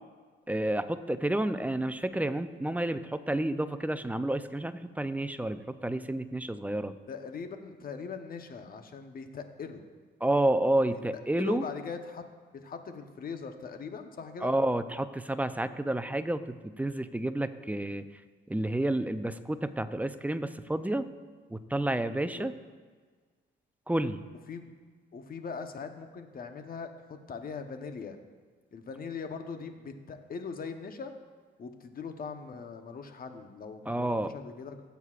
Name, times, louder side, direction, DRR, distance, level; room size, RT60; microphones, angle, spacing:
voice 1, 0.5-7.0 10.2-11.6 14.4-18.1 18.5-21.1 21.5-22.5 23.9-24.2 33.9-34.3, right 1 dB, 10° right, 11 dB, 0.5 m, -30 dB
voice 2, 7.1-9.8 10.9-11.0 11.3-12.2 12.6-14.5 22.2-22.5 24.5-24.7 25.1-28.2 28.7-31.1 31.6-34.8, left 5 dB, 45° left, 6 dB, 1.0 m, -41 dB
16.5 x 8.1 x 2.5 m, 1.5 s
cardioid pair, 90°, 20 cm